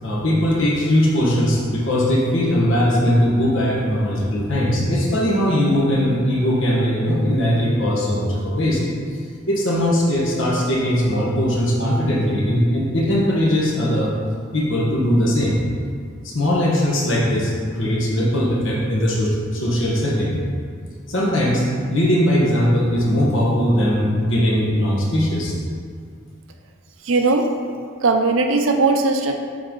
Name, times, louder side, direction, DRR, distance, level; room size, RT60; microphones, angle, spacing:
voice 1, 0.0-8.8 9.5-14.1 14.5-15.6 16.2-20.3 21.1-21.6 21.9-25.5, equal, 75° left, -4 dB, 1.3 m, -19 dB
voice 2, 27.0-27.5 28.0-29.3, right 3 dB, 80° right, 4 dB, 0.6 m, -18 dB
7.5 x 4.0 x 3.8 m, 2.1 s
head